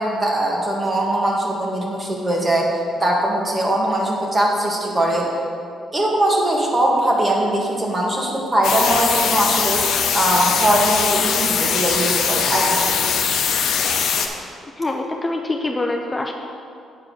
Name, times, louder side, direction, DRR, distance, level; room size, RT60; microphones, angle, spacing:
voice 1, 0.0-5.3 5.9-13.0, right 1 dB, 30° right, -2 dB, 1.8 m, -21 dB
sound 1, 8.6-14.3, left 6 dB, 75° left, 0.8 m, -21 dB
voice 2, 14.8-16.3, left 2 dB, 20° left, 2 dB, 0.6 m, -24 dB
8.4 x 4.7 x 6.5 m, 2.5 s
cardioid pair, 90°, 0 cm